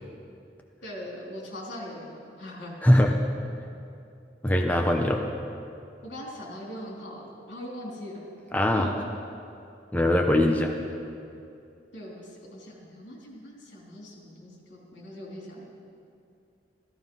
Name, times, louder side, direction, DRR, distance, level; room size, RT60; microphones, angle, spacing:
voice 1, 0.8-2.7 6.0-8.3 8.8-9.1 10.6-10.7 11.9-15.6, left 1 dB, 75° left, -2 dB, 3.6 m, -40 dB
voice 2, 2.8-3.2 4.4-5.2 8.5-8.9 9.9-10.7, left 1 dB, 10° left, 1 dB, 0.7 m, -21 dB
14.0 x 14.0 x 5.5 m, 2.6 s
head